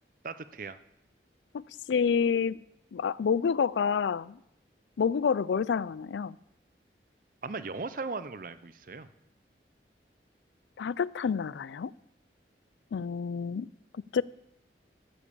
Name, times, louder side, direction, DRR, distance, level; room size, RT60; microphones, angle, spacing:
voice 1, 0.2-0.8 7.4-9.1, right 4 dB, 50° right, 0.6 m, -37 dB
voice 2, 1.9-2.6 2.9-4.4 5.0-6.4 10.8-11.9 12.9-13.7 14.1-14.2, left 6 dB, 85° left, 0.4 m, -28 dB
13.0 x 7.3 x 7.0 m
head